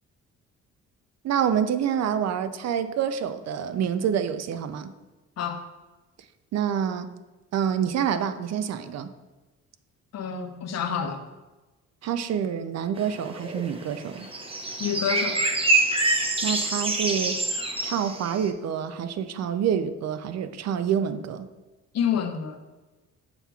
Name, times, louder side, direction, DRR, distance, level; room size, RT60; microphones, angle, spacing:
voice 1, 1.2-4.9 6.5-7.1 7.5-9.1 12.0-14.3 16.4-17.4 17.8-21.5, right 8 dB, 60° right, 11 dB, 0.5 m, -27 dB
voice 2, 10.1-11.2 14.8-15.4 21.9-22.6, left 8 dB, 60° left, 7 dB, 0.7 m, -28 dB
sound 1, 13.0-18.5, right 2 dB, 20° right, 0.8 m, -26 dB
7.0 x 5.8 x 2.3 m, 1.2 s
cardioid pair, 90°, 30 cm